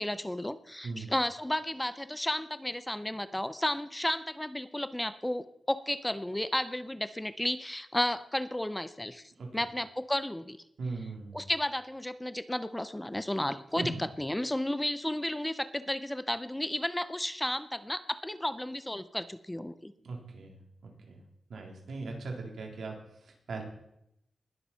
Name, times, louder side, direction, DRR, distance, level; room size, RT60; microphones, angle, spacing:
voice 1, 0.0-10.6 11.3-19.9, left 1 dB, 10° left, 14 dB, 0.6 m, -33 dB
voice 2, 10.8-11.4 13.8-13.9 20.0-21.2 21.5-23.6, right 3 dB, 85° right, 0 dB, 3.6 m, -39 dB
20.5 x 7.2 x 5.7 m, 0.78 s
wide cardioid pair, 125°, 0 cm